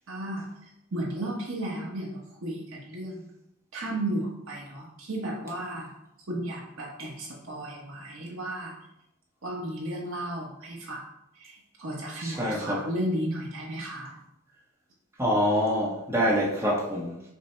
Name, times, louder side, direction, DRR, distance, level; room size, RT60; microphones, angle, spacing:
voice 1, 0.1-0.5 0.9-3.3 3.7-5.9 6.3-8.8 9.4-11.0 11.3-14.2, right 1 dB, 75° right, -3 dB, 0.9 m, -34 dB
voice 2, 12.2-12.8 15.2-17.2, equal, 10° right, -5 dB, 0.7 m, -26 dB
5.3 x 2.0 x 4.3 m, 0.86 s
head